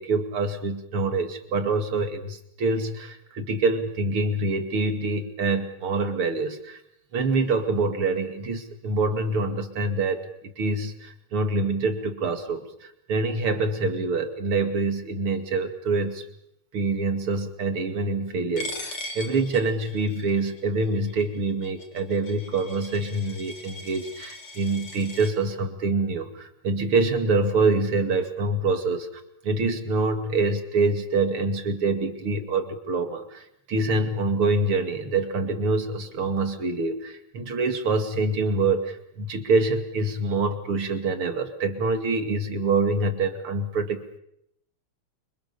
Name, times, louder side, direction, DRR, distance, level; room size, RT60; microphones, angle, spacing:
voice 1, 0.0-6.8 7.1-10.2 10.6-16.2 16.7-29.1 29.4-33.4 33.7-44.2, right 3 dB, 85° right, 7 dB, 3.4 m, -25 dB
Coin (dropping), 18.6-25.3, left 2 dB, 85° left, 4.3 m, -40 dB
29.0 x 25.5 x 7.1 m, 0.76 s
omnidirectional pair, 2.3 m